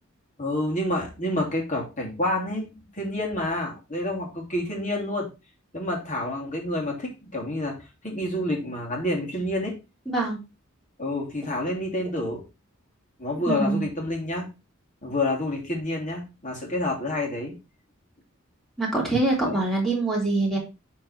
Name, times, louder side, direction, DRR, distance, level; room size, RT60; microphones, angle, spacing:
voice 1, 0.4-5.3 5.7-7.8 8.0-9.8 11.0-12.4 13.2-14.5 15.0-17.5 19.4-19.6, left 1 dB, 35° left, 0 dB, 3.0 m, -28 dB
voice 2, 10.1-10.4 13.5-13.8 18.8-20.6, right 2 dB, ahead, -3 dB, 3.4 m, -24 dB
8.0 x 4.6 x 4.6 m, 0.28 s
head